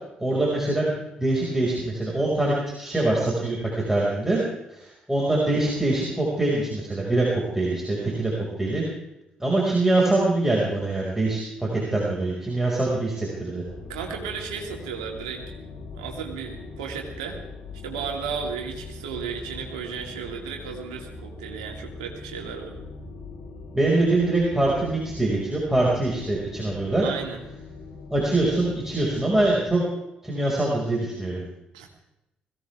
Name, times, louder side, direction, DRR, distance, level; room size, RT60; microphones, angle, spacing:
voice 1, 0.2-0.9 1.2-4.4 4.7-8.3 8.6-8.8 9.4-13.6 23.7-27.0 28.1-29.8 30.2-31.4, right 2 dB, 10° right, -4 dB, 5.6 m, -24 dB
sound 1, 13.6-29.7, left 3 dB, 70° left, 6.1 m, -41 dB
voice 2, 13.9-15.4 15.9-17.4 17.8-22.8 27.0-27.4 31.7-31.9, right 6 dB, 80° right, 2 dB, 2.4 m, -34 dB
21.5 x 16.5 x 3.6 m, 0.90 s
hypercardioid pair, 45°, 4 cm